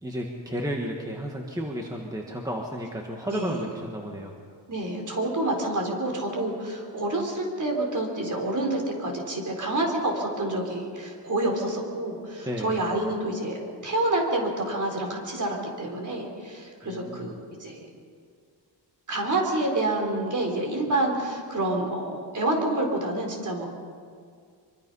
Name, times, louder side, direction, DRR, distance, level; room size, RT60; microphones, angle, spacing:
voice 1, 0.0-4.3 12.4-12.8 16.8-17.3, equal, 10° right, 0 dB, 1.6 m, -33 dB
voice 2, 3.3-3.6 4.7-17.8 19.1-23.7, right 1 dB, 40° right, 1 dB, 4.3 m, -28 dB
25.0 x 24.0 x 5.6 m, 2.1 s
wide cardioid pair, 170°, 45 cm